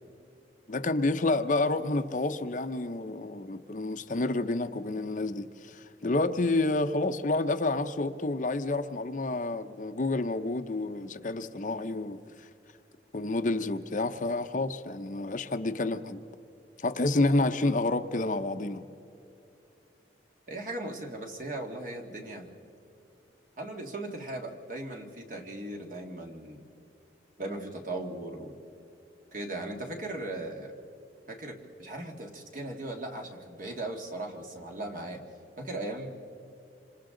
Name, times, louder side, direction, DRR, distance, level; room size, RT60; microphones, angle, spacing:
voice 1, 0.7-12.5 13.1-16.2 16.8-18.8, left 2 dB, 45° left, 0.7 m, -29 dB
voice 2, 20.5-22.5 23.6-26.6 27.4-28.6 29.3-30.7 31.3-35.2 35.6-36.1, right 2 dB, 50° right, 2.1 m, -38 dB
27.0 x 26.0 x 3.9 m
head